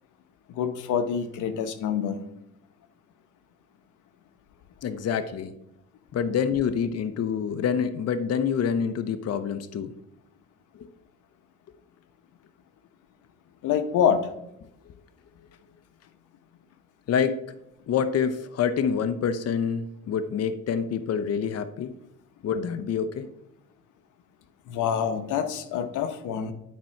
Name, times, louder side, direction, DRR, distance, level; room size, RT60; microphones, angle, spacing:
voice 1, 0.5-2.2 13.6-14.3 24.7-26.5, left 8 dB, 85° left, 9 dB, 1.0 m, -26 dB
voice 2, 4.8-5.5 6.1-9.9 10.7-10.9 17.1-17.4 17.9-21.9 22.4-23.3, left 7 dB, 55° left, 10 dB, 0.8 m, -27 dB
10.5 x 4.4 x 5.8 m, 0.84 s
cardioid pair, 90°, 30 cm